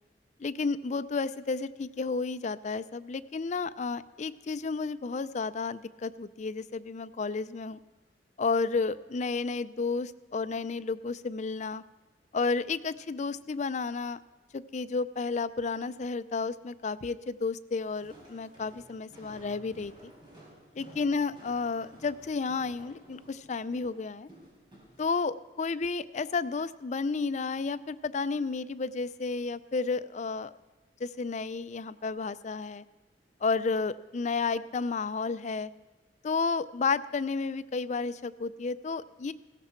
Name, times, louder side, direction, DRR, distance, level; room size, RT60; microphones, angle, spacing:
voice 1, 0.4-7.8 8.4-11.8 12.3-14.2 14.5-20.1 20.7-24.3 25.0-30.5 31.0-32.8 33.4-35.7 36.2-39.3, left 4 dB, 40° left, 14 dB, 0.4 m, -32 dB
Walk footsteps, 17.8-25.0, right 1 dB, 25° right, 4.3 m, -54 dB
16.5 x 14.0 x 4.4 m, 1.2 s
head